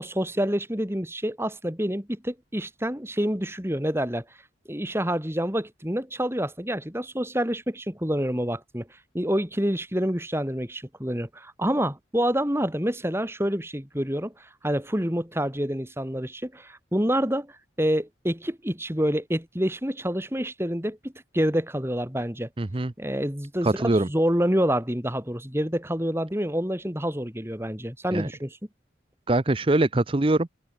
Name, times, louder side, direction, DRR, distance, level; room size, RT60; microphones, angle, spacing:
voice 1, 0.0-4.2 4.7-8.9 9.1-22.5 23.0-28.6, equal, 15° right, 3.7 m, -27 dB
voice 2, 22.6-22.9 23.6-24.1 28.1-28.3 29.3-30.5, right 2 dB, 30° right, 0.6 m, -23 dB
head